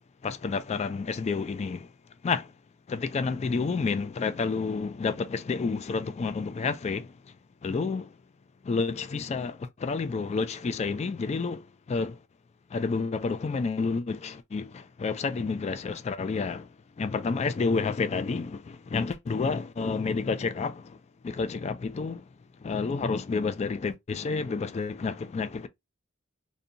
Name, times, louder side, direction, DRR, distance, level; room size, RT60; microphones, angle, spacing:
voice 1, 0.2-1.9 2.2-2.5 2.9-7.1 7.6-8.1 8.6-12.2 12.7-16.7 17.0-21.0 21.2-22.2 22.6-25.7, left 4 dB, 30° left, 0.3 m, -30 dB
2.7 x 2.2 x 2.5 m
head